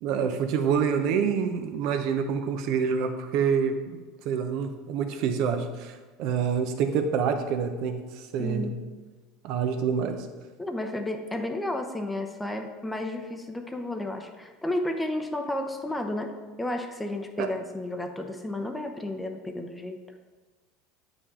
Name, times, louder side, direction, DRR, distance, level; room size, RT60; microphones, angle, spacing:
voice 1, 0.0-3.7 4.2-8.0 8.3-8.7 9.4-10.2 17.4-17.5, right 6 dB, 65° right, 7 dB, 0.8 m, -26 dB
voice 2, 8.4-8.8 10.6-16.3 16.6-20.0, left 1 dB, 10° left, 4 dB, 0.8 m, -32 dB
8.4 x 5.3 x 3.8 m, 1.4 s
hypercardioid pair, 85°, 0 cm